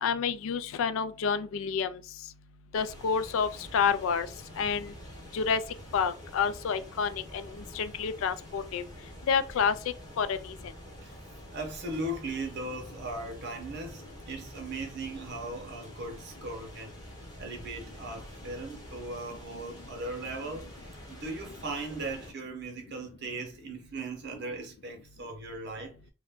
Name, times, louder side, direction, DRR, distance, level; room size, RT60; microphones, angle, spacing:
voice 1, 0.0-2.0 2.7-4.3 4.6-4.9 5.3-5.6 5.9-8.8 9.3-9.7 10.2-10.5, left 6 dB, 60° left, 0.3 m, -29 dB
sound 1, 2.7-22.3, equal, 20° left, 0.8 m, -47 dB
voice 2, 11.5-17.0 17.4-20.7 21.1-26.0, right 2 dB, 50° right, 0.8 m, -38 dB
2.5 x 2.2 x 3.4 m
head